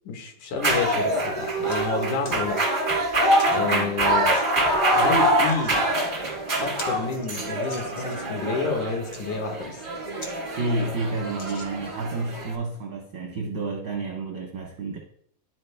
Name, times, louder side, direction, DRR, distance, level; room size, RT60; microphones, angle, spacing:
voice 1, 0.1-2.6 3.5-4.3 4.9-5.7 6.6-9.8, left 4 dB, 80° left, 3 dB, 2.6 m, -29 dB
sound 1, 0.6-12.5, right 1 dB, 50° right, 0.5 m, -25 dB
sound 2, 1.7-1.8 2.2-2.4 3.4-3.6 4.3-4.5 5.2-5.8 6.2-6.3 6.6-8.3 8.9-9.2 9.8-9.9 10.2-10.4 10.7-10.8 11.3-12.0 12.7-12.8, left 2 dB, 55° left, 1.0 m, -43 dB
voice 2, 3.6-4.0 10.6-15.0, right 3 dB, 75° right, 0 dB, 1.0 m, -30 dB
11.5 x 4.4 x 3.3 m, 0.67 s
omnidirectional pair, 3.5 m